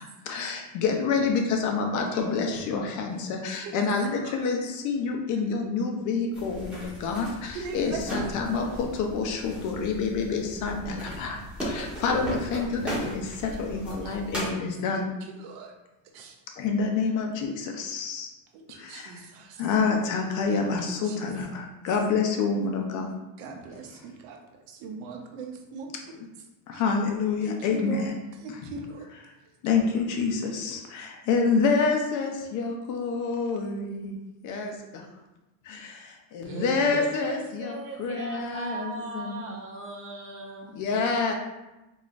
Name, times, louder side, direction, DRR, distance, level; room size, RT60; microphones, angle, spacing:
voice 1, 0.0-15.1 16.6-18.3 18.8-19.2 19.6-23.1 26.7-28.1 29.6-34.2 34.4-35.0 35.6-39.5 40.7-41.3, left 4 dB, 50° left, 2 dB, 0.7 m, -28 dB
sound 1, 6.3-14.5, right 1 dB, 5° right, 1.3 m, -37 dB
voice 2, 7.5-8.2 13.9-14.2 14.9-15.8 16.1-16.4 18.5-19.7 20.5-21.4 23.4-26.1 26.7-26.8 27.4-29.1 29.9-30.0, right 4 dB, 90° right, 3 dB, 0.7 m, -41 dB
voice 3, 36.4-40.8, right 3 dB, 35° right, 1 dB, 0.7 m, -38 dB
3.9 x 3.0 x 2.5 m, 1.0 s
cardioid pair, 150°, 38 cm